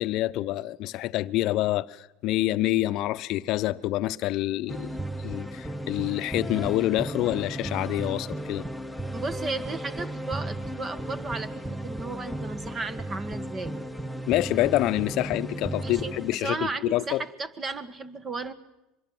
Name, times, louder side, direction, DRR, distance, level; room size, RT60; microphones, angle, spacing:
voice 1, 0.0-4.9 5.2-8.7 14.3-17.2, left 16 dB, 60° left, 0.8 m, -27 dB
sound 1, 4.7-16.3, right 1 dB, ahead, 1.1 m, -35 dB
voice 2, 9.1-13.7 15.8-18.5, right 3 dB, 30° right, 1.8 m, -34 dB
24.5 x 22.5 x 7.7 m
supercardioid pair, 95°, 0 cm